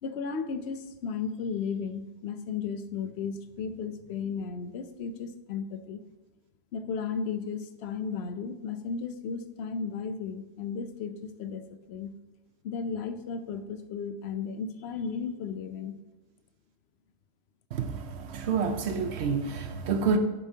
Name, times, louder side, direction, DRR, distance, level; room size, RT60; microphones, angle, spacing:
voice 1, 0.0-6.0 6.7-12.1 12.6-16.0, left 5 dB, 80° left, 0.9 m, -34 dB
voice 2, 17.7-20.2, right 5 dB, 85° right, 1.0 m, -28 dB
10.5 x 7.0 x 2.8 m
omnidirectional pair, 1.1 m